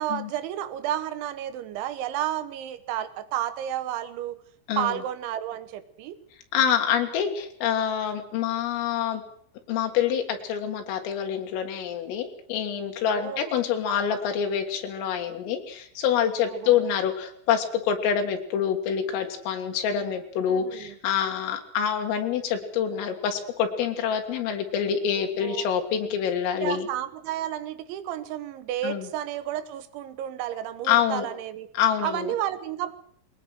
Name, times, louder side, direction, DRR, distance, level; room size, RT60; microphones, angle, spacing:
voice 1, 0.0-4.4 4.8-6.2 13.1-13.5 16.4-16.9 20.5-21.0 25.1-25.7 26.5-31.7 32.0-32.9, right 11 dB, 75° right, 13 dB, 3.1 m, -32 dB
voice 2, 6.5-9.2 9.7-26.9 28.8-29.1 30.9-31.3 31.7-32.3, left 8 dB, 80° left, 4 dB, 4.4 m, -26 dB
21.5 x 19.5 x 6.5 m, 0.62 s
omnidirectional pair, 5.9 m